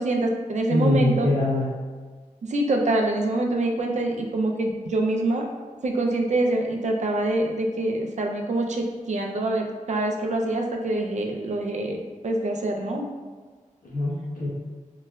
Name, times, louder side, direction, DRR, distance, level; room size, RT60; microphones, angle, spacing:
voice 1, 0.0-1.3 2.4-5.5 5.8-13.1, right 2 dB, 60° right, 1 dB, 0.4 m, -25 dB
voice 2, 0.7-1.7 13.8-14.5, left 2 dB, 80° left, -6 dB, 1.0 m, -23 dB
3.8 x 2.1 x 2.2 m, 1.4 s
wide cardioid pair, 60°, 14 cm